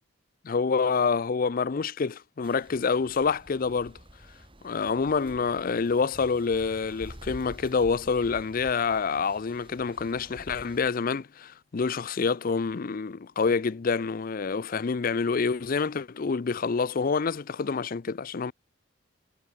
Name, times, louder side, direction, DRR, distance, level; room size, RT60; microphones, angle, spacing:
voice 1, 0.4-3.9 4.6-18.5, left 5 dB, 45° left, 0.5 m, -27 dB
sound 1, 2.4-10.9, right 1 dB, 25° right, 3.4 m, -48 dB
head